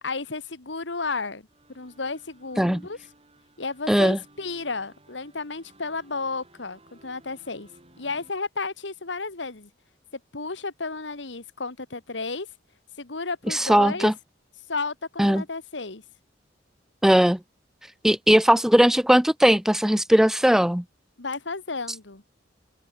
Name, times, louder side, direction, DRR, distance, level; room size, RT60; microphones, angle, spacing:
voice 1, 0.0-1.4 1.7-3.0 3.6-7.7 8.0-9.7 10.3-12.5 13.0-14.1 14.7-16.0 21.2-22.2, left 3 dB, 80° left, 1.9 m, -32 dB
sound 1, 1.5-8.3, right 1 dB, 35° right, 7.9 m, -56 dB
voice 2, 3.9-4.2 13.5-14.1 15.2-15.4 17.0-17.4 18.0-20.8, equal, 5° right, 0.4 m, -19 dB
open air
head